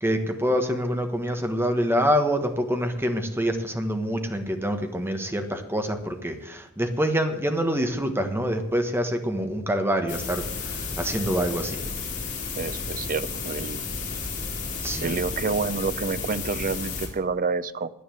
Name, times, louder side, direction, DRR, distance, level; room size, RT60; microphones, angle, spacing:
voice 1, 0.0-11.8 14.8-15.2, equal, 10° right, 6 dB, 1.3 m, -26 dB
sound 1, 10.1-17.1, left 4 dB, 35° left, 3.5 m, -32 dB
voice 2, 12.6-13.8 15.0-17.9, right 4 dB, 40° right, 15 dB, 0.6 m, -28 dB
10.0 x 9.9 x 7.8 m, 0.86 s
head